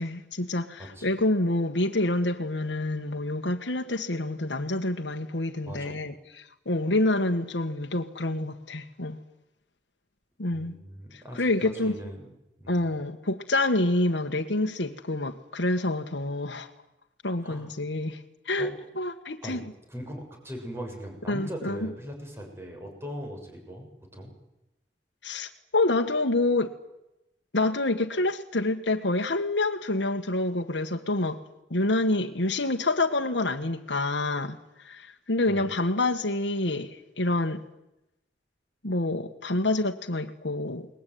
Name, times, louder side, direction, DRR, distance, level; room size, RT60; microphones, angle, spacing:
voice 1, 0.0-9.2 10.4-10.8 11.1-12.0 12.7-16.7 17.2-19.6 21.3-21.9 25.2-26.7 27.5-31.4 31.7-34.6 34.8-37.6 38.8-40.9, left 2 dB, 85° left, 1.6 m, -27 dB
voice 2, 0.8-1.2 5.6-6.0 10.5-12.3 12.6-12.9 17.4-17.7 18.6-18.7 19.4-19.6 19.9-24.3 35.5-35.7, equal, 15° right, 6.9 m, -40 dB
29.5 x 21.0 x 9.4 m
head